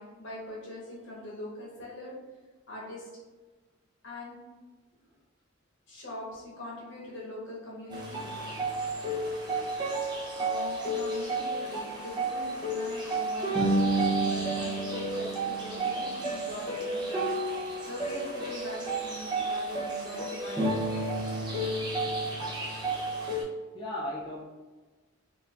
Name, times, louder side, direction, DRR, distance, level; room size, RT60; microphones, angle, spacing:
voice 1, 0.0-2.1 2.7-3.1 4.0-4.4 5.9-8.3 10.3-17.3 17.5-20.7, left 1 dB, 60° left, -5 dB, 1.3 m, -42 dB
sound 1, 7.9-23.4, right 2 dB, 20° right, 0.8 m, -31 dB
voice 2, 23.7-24.4, left 1 dB, 20° left, -7 dB, 0.5 m, -37 dB
4.1 x 2.8 x 2.5 m, 1.3 s
head